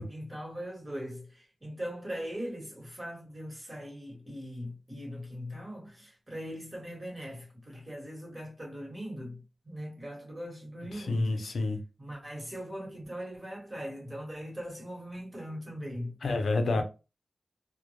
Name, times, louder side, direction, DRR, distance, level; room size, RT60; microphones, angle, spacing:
voice 1, 0.0-11.5 12.0-16.2 16.7-16.8, equal, 30° right, 1.2 m, -40 dB
voice 2, 10.9-11.8 16.2-16.8, left 2 dB, 85° left, 0.5 m, -28 dB
2.1 x 2.1 x 3.0 m
wide cardioid pair, 65°, 0 cm